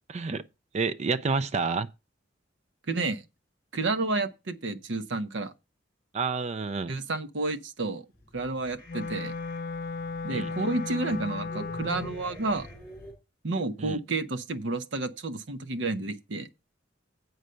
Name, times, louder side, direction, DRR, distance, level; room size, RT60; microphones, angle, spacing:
voice 1, 0.1-0.4 0.7-1.9 6.1-6.9 10.3-10.5 13.8-14.0, right 4 dB, 35° right, 0.4 m, -29 dB
voice 2, 2.9-3.2 3.7-5.5 6.9-8.1 8.3-9.3 10.2-12.7 13.4-16.5, right 3 dB, 70° right, 0.8 m, -30 dB
sound 1, 8.1-13.1, left 1 dB, 15° left, 3.9 m, -48 dB
Wind instrument woodwind instrument, 8.9-12.3, left 4 dB, 50° left, 0.4 m, -35 dB
8.0 x 6.3 x 5.5 m
head